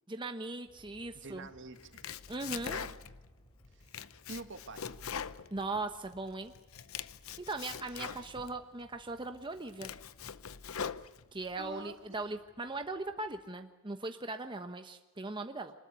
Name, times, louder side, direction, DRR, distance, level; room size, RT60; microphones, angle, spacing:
voice 1, 0.1-1.5 2.3-2.8 5.5-6.5 7.5-9.9 11.3-15.7, right 2 dB, 25° right, 6 dB, 1.1 m, -39 dB
Aircraft, 0.6-13.5, equal, 25° left, 5.6 m, -64 dB
voice 2, 1.1-2.1 2.6-3.0 3.7-3.9 4.3-4.9 11.6-12.2, right 3 dB, 65° right, 7 dB, 2.1 m, -47 dB
Domestic sounds home sounds, 1.8-3.3 3.6-6.2 6.5-8.5 9.1-9.2 9.6-11.5, left 7 dB, 85° left, 0.8 m, -42 dB
25.5 x 20.5 x 8.2 m, 1.1 s
head